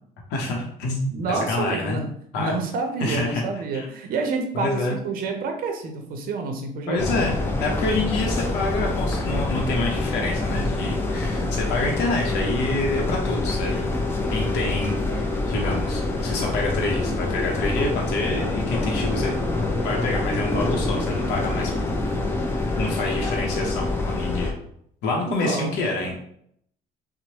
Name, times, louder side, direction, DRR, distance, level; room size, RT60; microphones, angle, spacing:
voice 1, 0.3-2.0 2.3-2.5 3.0-3.4 3.7-3.9 4.5-5.0 6.9-13.9 14.3-19.4 19.7-22.0 22.8-24.5 25.0-26.1, left 2 dB, 85° left, -1 dB, 0.6 m, -27 dB
voice 2, 1.1-2.1 2.4-7.0 25.3-25.8 26.0-26.1, right 4 dB, 60° right, 4 dB, 0.6 m, -28 dB
sound 1, 7.0-24.5, left 2 dB, 15° left, 0.4 m, -26 dB
2.9 x 2.0 x 2.8 m, 0.68 s
cardioid pair, 110°, 17 cm